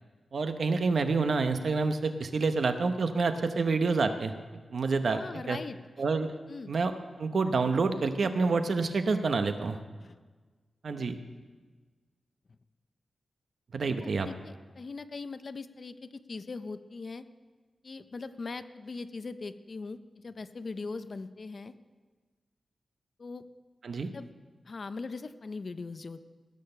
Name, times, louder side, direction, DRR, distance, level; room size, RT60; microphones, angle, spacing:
voice 1, 0.3-4.3 4.7-5.2 5.5-5.6 6.0-6.3 6.7-6.9 7.2-9.8 10.8-11.2 13.7-14.3 23.8-24.1, right 4 dB, 60° right, 8 dB, 0.8 m, -28 dB
voice 2, 5.1-5.8 6.5-6.7 10.0-10.2 14.0-17.2 17.8-21.7 23.2-23.4 24.1-24.3 24.6-26.3, left 4 dB, 45° left, 12 dB, 0.5 m, -40 dB
17.0 x 6.5 x 6.7 m, 1.4 s
wide cardioid pair, 145°, 0 cm